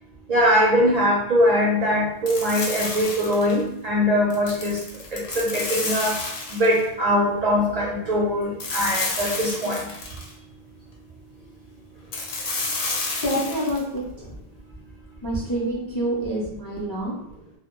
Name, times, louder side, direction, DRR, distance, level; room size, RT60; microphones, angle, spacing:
voice 1, 0.3-4.8 5.1-6.2 6.5-9.9, equal, 55° right, -3 dB, 0.5 m, -21 dB
sound 1, 2.3-3.6 4.3-6.8 8.6-10.3 12.1-13.8, left 3 dB, 90° left, 0.9 m, -30 dB
voice 2, 13.2-14.4 15.2-17.2, right 1 dB, 35° left, -6 dB, 0.4 m, -27 dB
2.4 x 2.0 x 2.9 m, 0.76 s
omnidirectional pair, 1.0 m